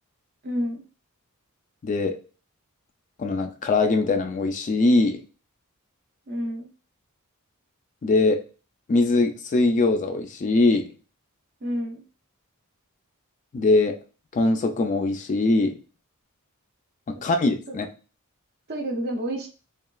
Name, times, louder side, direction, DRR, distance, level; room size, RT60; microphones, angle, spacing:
voice 1, 0.4-0.8 6.3-6.7 11.6-12.0 17.7-17.8 18.7-19.5, equal, 45° right, 3 dB, 0.6 m, -29 dB
voice 2, 1.8-2.2 3.2-5.2 8.0-8.4 8.9-10.9 13.5-13.9 14.3-15.8 17.1-17.9, left 2 dB, 35° left, 6 dB, 0.3 m, -21 dB
3.0 x 2.2 x 2.3 m, 0.35 s
head